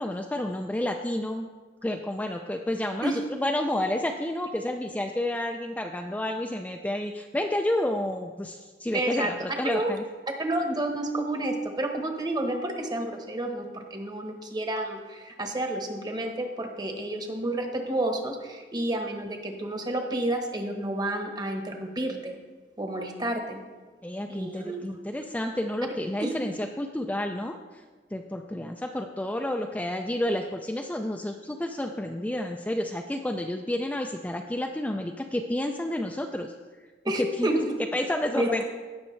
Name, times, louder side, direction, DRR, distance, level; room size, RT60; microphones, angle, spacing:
voice 1, 0.0-1.5 1.8-10.0 24.0-27.6 28.1-36.5 37.2-37.6 37.9-38.6, left 1 dB, 10° left, 3 dB, 0.4 m, -30 dB
voice 2, 8.9-9.9 10.4-22.4 22.8-23.6 24.3-24.8 26.2-26.3 37.0-37.8 38.3-38.6, right 1 dB, 25° right, 4 dB, 1.1 m, -30 dB
16.5 x 6.3 x 3.2 m, 1.4 s
head